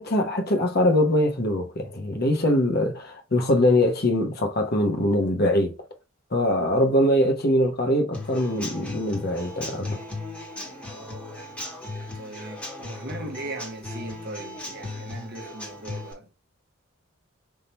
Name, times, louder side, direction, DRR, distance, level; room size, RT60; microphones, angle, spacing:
voice 1, 0.0-5.8 6.3-10.0, left 1 dB, 50° left, 1.0 m, -22 dB
Human voice / Acoustic guitar / Drum, 8.1-16.1, left 2 dB, 5° left, 1.3 m, -37 dB
voice 2, 12.1-16.3, right 2 dB, 50° right, 0.9 m, -38 dB
3.7 x 2.8 x 4.3 m
head